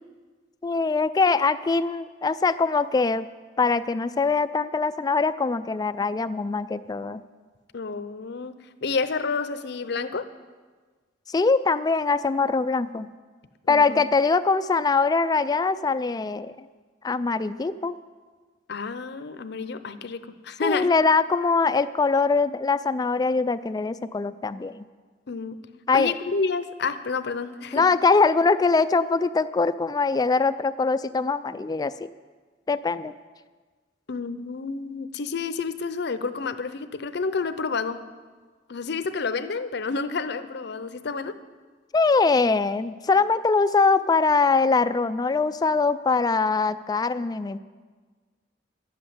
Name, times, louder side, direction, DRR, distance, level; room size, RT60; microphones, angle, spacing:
voice 1, 0.6-3.3 3.6-7.2 11.3-13.1 13.7-16.5 17.0-18.0 20.6-24.8 25.9-26.1 27.7-32.1 32.7-33.1 41.9-47.6, left 4 dB, 20° left, 14 dB, 0.3 m, -22 dB
voice 2, 7.7-8.5 8.8-10.3 13.7-14.0 18.7-20.9 25.3-25.6 25.9-27.8 34.1-38.0 38.7-41.4, left 4 dB, 65° left, 12 dB, 0.7 m, -29 dB
12.0 x 7.7 x 8.5 m, 1.4 s
head